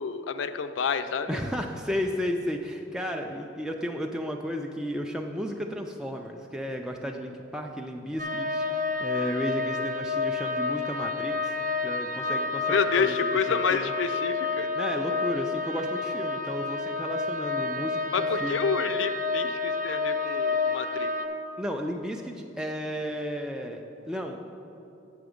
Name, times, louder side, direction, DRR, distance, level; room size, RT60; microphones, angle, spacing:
voice 1, 0.0-1.4 12.7-14.7 18.1-21.1, left 5 dB, 70° left, 10 dB, 0.4 m, -28 dB
voice 2, 1.3-11.6 11.8-13.1 13.5-13.9 14.7-18.8 21.6-24.4, equal, 5° right, 1 dB, 0.3 m, -33 dB
sound 1, 8.2-21.3, left 4 dB, 45° right, 0.6 m, -29 dB
8.1 x 6.8 x 5.0 m, 2.9 s
head